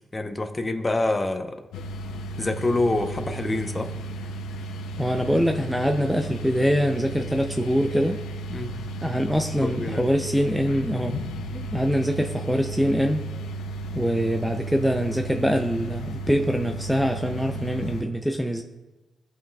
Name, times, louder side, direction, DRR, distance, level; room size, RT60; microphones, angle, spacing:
voice 1, 0.1-1.6 2.4-3.9 8.5-8.7 9.6-10.1, left 2 dB, 25° left, 7 dB, 0.8 m, -26 dB
sound 1, 1.7-18.0, right 1 dB, 90° left, 0.5 m, -34 dB
voice 2, 5.0-8.2 9.0-11.2 11.5-13.2 13.9-18.6, equal, ahead, 4 dB, 0.5 m, -24 dB
16.0 x 5.6 x 2.3 m, 1.1 s
cardioid pair, 70°, 0 cm